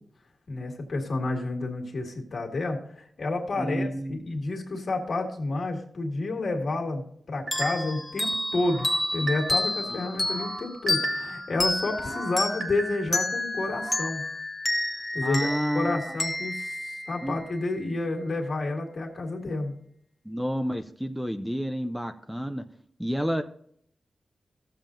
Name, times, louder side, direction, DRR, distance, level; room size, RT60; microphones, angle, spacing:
voice 1, 0.5-14.2 15.1-15.5 15.7-19.7, left 2 dB, 55° left, 1 dB, 1.9 m, -30 dB
voice 2, 3.6-4.2 15.2-16.2 17.2-17.4 20.3-22.6 23.0-23.4, equal, 5° right, 8 dB, 0.4 m, -30 dB
Hand Bells Chromatic Ascending, 7.5-17.8, left 2 dB, 15° left, 1.1 m, -30 dB
sound 1, 7.5-8.0 8.5-9.8 10.1-11.5 11.9-13.2 13.6-14.1, right 2 dB, 50° right, 1.0 m, -36 dB
15.5 x 7.2 x 2.6 m, 0.65 s
wide cardioid pair, 130°, 0 cm